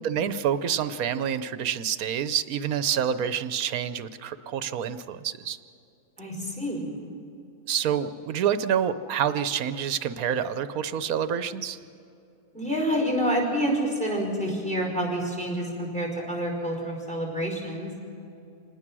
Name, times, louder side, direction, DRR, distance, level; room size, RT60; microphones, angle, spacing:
voice 1, 0.0-5.6 7.7-11.8, right 8 dB, 75° right, 12 dB, 1.2 m, -27 dB
voice 2, 6.2-7.1 12.5-17.9, equal, 5° left, 0 dB, 5.1 m, -28 dB
26.5 x 20.0 x 6.2 m, 2.7 s
omnidirectional pair, 1.6 m